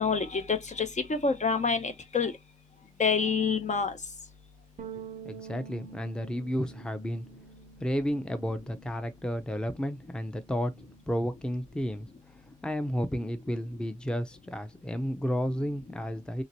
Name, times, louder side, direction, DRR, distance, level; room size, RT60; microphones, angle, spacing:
voice 1, 0.0-2.3 3.0-3.9, left 5 dB, 60° left, 0.7 m, -27 dB
sound 1, 4.8-9.3 9.6-11.0, right 7 dB, 80° right, 0.4 m, -48 dB
voice 2, 5.2-7.3 7.8-10.7 11.1-16.4, equal, 5° left, 0.4 m, -32 dB
2.9 x 2.8 x 2.7 m
wide cardioid pair, 70°, 14 cm